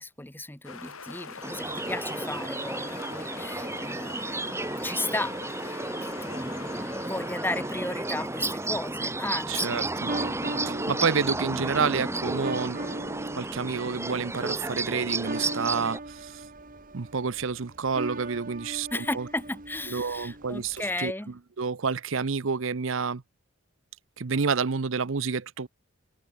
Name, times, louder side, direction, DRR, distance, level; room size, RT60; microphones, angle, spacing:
voice 1, 0.0-9.9 18.9-21.3, left 2 dB, 10° left, 1.7 m, -35 dB
sound 1, 0.6-9.0, left 5 dB, 85° left, 5.9 m, -44 dB
sound 2, 1.4-16.0, right 2 dB, 15° right, 1.3 m, -32 dB
voice 2, 9.5-10.1 10.7-12.8 13.3-16.4 16.9-19.3 19.9-21.1 21.6-23.2 24.2-25.7, right 5 dB, 65° right, 0.7 m, -29 dB
sound 3, 10.1-21.0, right 2 dB, 40° right, 2.1 m, -40 dB
head